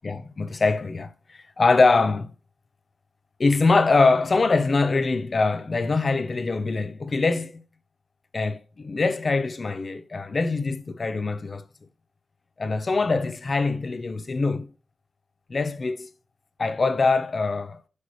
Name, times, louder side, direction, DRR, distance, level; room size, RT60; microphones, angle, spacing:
voice 1, 0.0-1.1 1.6-2.3 3.4-7.6 8.3-11.6 12.6-14.7 15.5-16.1 16.6-17.8, left 3 dB, 30° left, 0.7 m, -23 dB
9.6 x 6.7 x 3.1 m
wide cardioid pair, 160°, 0 cm